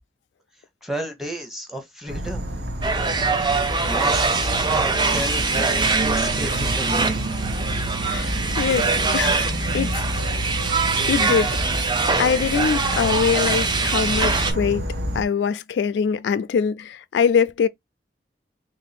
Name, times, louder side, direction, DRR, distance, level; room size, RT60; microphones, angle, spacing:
voice 1, 0.8-2.4 3.9-7.2, equal, ahead, 0.9 m, -32 dB
Insect / Frog, 2.1-15.2, right 1 dB, 70° right, 0.9 m, -28 dB
sound 1, 2.8-14.5, right 4 dB, 25° right, 0.6 m, -23 dB
voice 2, 8.1-9.4 9.7-10.0 11.1-11.5 12.2-14.8 15.1-17.7, left 6 dB, 85° left, 0.3 m, -23 dB
3.0 x 2.7 x 4.1 m
head